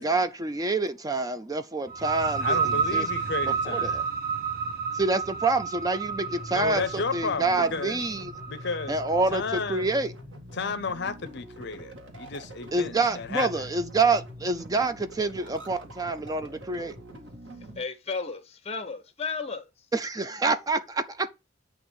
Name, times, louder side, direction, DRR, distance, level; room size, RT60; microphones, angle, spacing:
voice 1, 0.0-3.1 3.7-4.0 4.9-8.3 8.9-10.1 12.7-17.0 19.9-21.3, right 3 dB, 20° right, 0.5 m, -27 dB
sound 1, 1.9-9.4, right 5 dB, 55° right, 1.2 m, -31 dB
voice 2, 2.4-4.0 6.5-8.0 8.5-9.0 9.3-9.9 10.5-13.7, left 4 dB, 65° left, 0.7 m, -33 dB
sound 2, 6.0-17.8, equal, 90° right, 1.9 m, -44 dB
voice 3, 17.8-19.7, left 4 dB, 35° left, 1.2 m, -33 dB
8.8 x 3.0 x 6.3 m
head